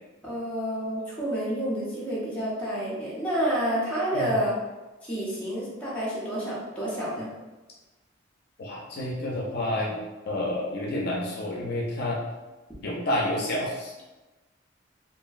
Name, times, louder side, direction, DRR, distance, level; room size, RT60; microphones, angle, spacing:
voice 1, 0.2-4.5 5.0-7.3, equal, 5° left, -8 dB, 0.7 m, -29 dB
voice 2, 8.6-10.0 10.3-12.2 12.8-13.9, left 1 dB, 55° left, -3 dB, 0.5 m, -29 dB
2.9 x 2.5 x 2.3 m, 1.2 s
head